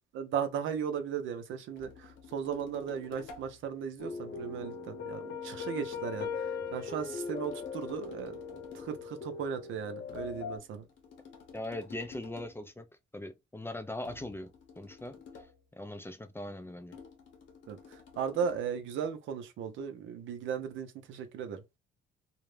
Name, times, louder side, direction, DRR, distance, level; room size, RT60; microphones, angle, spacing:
voice 1, 0.1-8.4 8.7-10.9 17.7-21.6, right 7 dB, 80° right, 0.6 m, -36 dB
sound 1, 1.8-3.6 6.2-9.0 10.1-12.6 14.0-15.6 16.9-18.7, left 5 dB, 75° left, 1.0 m, -52 dB
sound 2, 4.0-10.6, left 5 dB, 55° left, 0.6 m, -39 dB
voice 2, 11.5-12.9 13.1-14.5 14.8-15.5 15.7-17.0, left 1 dB, 10° left, 0.4 m, -40 dB
2.4 x 2.0 x 3.1 m
cardioid pair, 90°, 20 cm